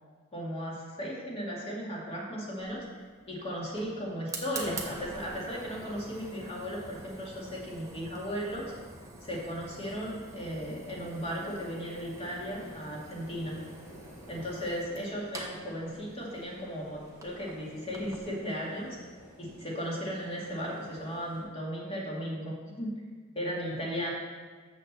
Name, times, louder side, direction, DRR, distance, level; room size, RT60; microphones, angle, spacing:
voice 1, 0.3-8.7 9.2-13.6 14.3-19.0 19.4-22.9 23.3-24.1, equal, 30° left, -4 dB, 2.3 m, -36 dB
Fire, 2.6-18.3, right 2 dB, 15° right, 1.0 m, -46 dB
sound 1, 10.3-21.4, equal, 75° left, 2.4 m, -52 dB
6.8 x 6.4 x 6.7 m, 1.5 s
head